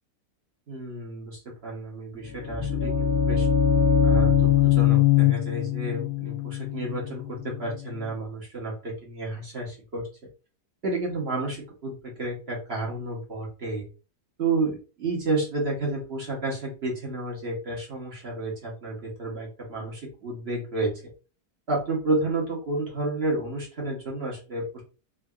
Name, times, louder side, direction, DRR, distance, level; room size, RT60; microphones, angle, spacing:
voice 1, 0.7-3.5 4.0-10.1 10.8-13.8 14.4-20.9 21.7-24.8, right 2 dB, 45° right, -2 dB, 1.0 m, -31 dB
sound 1, 2.2-8.1, left 8 dB, 65° left, 1.0 m, -22 dB
3.7 x 2.2 x 2.2 m, 0.35 s
omnidirectional pair, 1.7 m